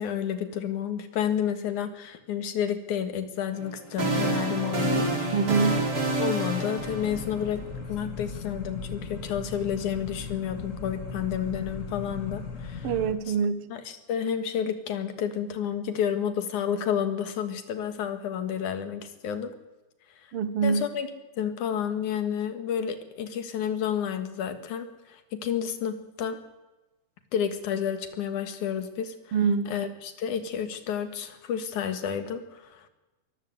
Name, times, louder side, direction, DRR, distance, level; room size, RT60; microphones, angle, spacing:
voice 1, 0.0-5.3 6.2-7.6 7.9-12.9 13.3-13.4 13.7-19.5 20.6-21.1 21.4-26.4 27.3-29.3 29.7-32.9, left 8 dB, 75° left, 9 dB, 3.2 m, -30 dB
sound 1, 3.6-7.8, right 2 dB, 35° right, 4.0 m, -28 dB
voice 2, 5.3-5.8 12.8-13.7 20.3-20.8 29.3-29.7, right 5 dB, 60° right, 13 dB, 1.8 m, -25 dB
sound 2, 6.8-13.1, left 4 dB, 30° left, 2.1 m, -38 dB
22.5 x 14.5 x 8.0 m, 1.1 s
omnidirectional pair, 3.5 m